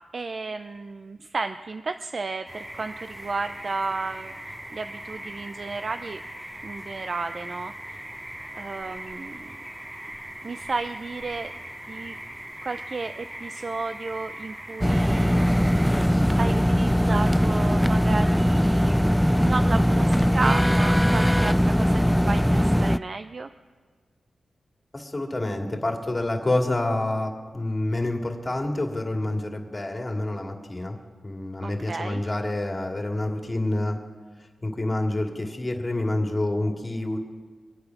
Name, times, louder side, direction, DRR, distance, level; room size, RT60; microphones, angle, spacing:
voice 1, 0.1-6.2 6.6-8.0 8.5-9.5 10.4-11.5 11.9-12.2 12.6-15.6 16.4-23.5 31.6-32.2, right 3 dB, 55° right, 9 dB, 0.5 m, -33 dB
sound 1, 2.5-15.9, right 1 dB, 20° right, 2.2 m, -40 dB
sound 2, 14.8-23.0, equal, ahead, 0.4 m, -20 dB
voice 2, 24.9-31.0 31.2-34.0 34.6-37.2, left 1 dB, 30° left, 2 dB, 2.5 m, -27 dB
24.0 x 8.6 x 6.0 m, 1.5 s
cardioid pair, 55°, 0 cm